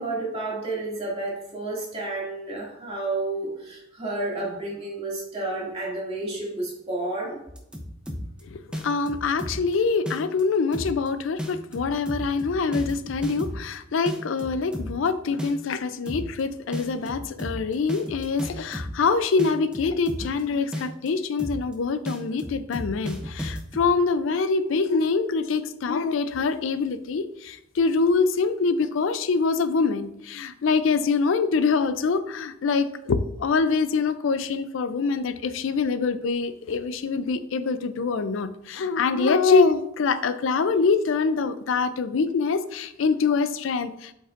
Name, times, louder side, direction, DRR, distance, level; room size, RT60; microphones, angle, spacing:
voice 1, 0.0-7.4, right 2 dB, 30° right, -5 dB, 2.2 m, -31 dB
sound 1, 7.5-8.4 8.7-9.7 10.1-10.4 10.7-11.1 11.4-13.7 14.1-15.1 15.4-15.7 16.1-16.4 16.7-19.1 19.4-20.4 20.7-21.1 21.4-21.7 22.1-23.9, equal, 5° right, 0.7 m, -33 dB
voice 2, 8.5-44.1, left 4 dB, 70° left, 13 dB, 0.4 m, -24 dB
7.6 x 5.4 x 2.5 m, 0.79 s
head